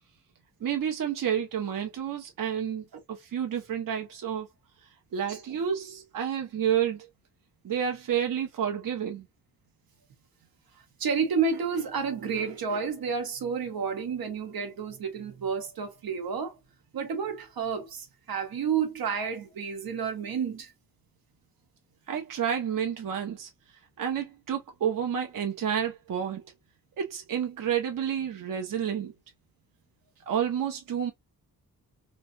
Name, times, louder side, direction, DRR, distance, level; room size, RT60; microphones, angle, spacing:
voice 1, 0.6-4.5 5.1-7.1 7.6-9.3 22.1-23.5 24.0-26.4 27.0-29.1 30.3-31.1, right 8 dB, 65° right, 0.8 m, -30 dB
voice 2, 11.0-16.5 16.9-20.7, right 6 dB, 85° right, 1.0 m, -30 dB
3.1 x 2.6 x 2.5 m
wide cardioid pair, 130°, 35 cm